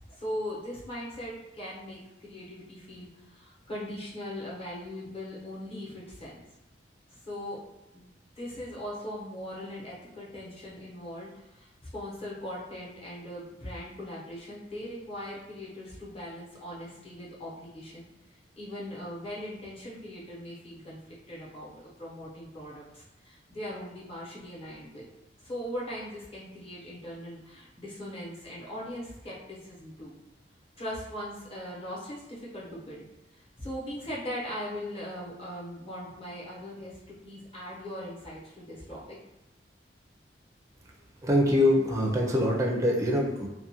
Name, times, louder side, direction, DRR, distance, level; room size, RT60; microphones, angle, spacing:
voice 1, 0.1-6.4 7.1-7.6 7.9-18.0 18.6-21.0 21.3-25.0 25.4-30.1 30.8-33.0 33.3-39.2, equal, 35° left, -6 dB, 0.9 m, -40 dB
voice 2, 41.2-43.5, left 1 dB, 20° right, -2 dB, 0.4 m, -24 dB
2.4 x 2.2 x 2.8 m, 0.97 s
head